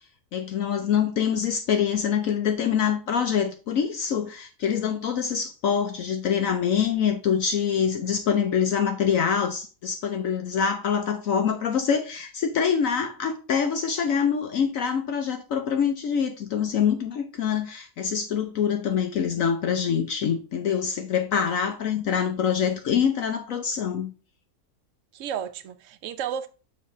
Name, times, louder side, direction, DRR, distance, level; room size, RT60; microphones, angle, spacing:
voice 1, 0.3-24.1, left 7 dB, 65° left, 1.1 m, -25 dB
voice 2, 25.1-26.5, right 8 dB, 65° right, 1.0 m, -33 dB
7.0 x 3.2 x 5.3 m
omnidirectional pair, 1.6 m